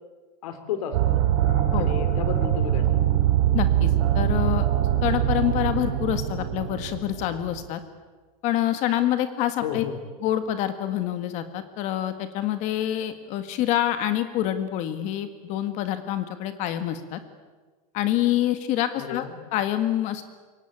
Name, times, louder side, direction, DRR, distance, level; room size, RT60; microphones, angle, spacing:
voice 1, 0.4-1.3 1.8-3.1 9.6-10.0 19.0-19.3, left 8 dB, 65° left, 8 dB, 4.2 m, -33 dB
sound 1, 0.9-7.7, right 11 dB, 60° right, 3.8 m, -23 dB
voice 2, 3.5-4.7 5.0-7.8 8.4-9.8 10.2-17.2 17.9-20.2, left 12 dB, 35° left, 9 dB, 1.8 m, -26 dB
27.5 x 23.5 x 8.6 m, 1.3 s
supercardioid pair, 160°, 20 cm